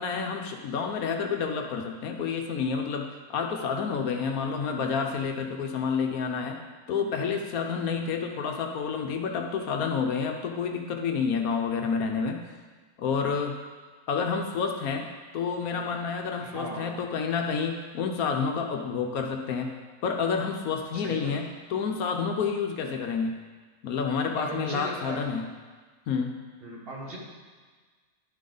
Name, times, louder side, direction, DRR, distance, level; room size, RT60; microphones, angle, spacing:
voice 1, 0.0-6.6 6.9-12.4 13.0-13.6 14.1-15.1 15.3-19.7 20.0-23.3 23.8-25.5 26.1-26.4, left 5 dB, 70° left, 3 dB, 1.1 m, -29 dB
voice 2, 16.4-16.9 20.9-21.3 24.3-25.2 26.6-27.2, right 1 dB, 40° right, -3 dB, 1.4 m, -37 dB
10.5 x 5.4 x 3.8 m, 1.4 s
omnidirectional pair, 1.7 m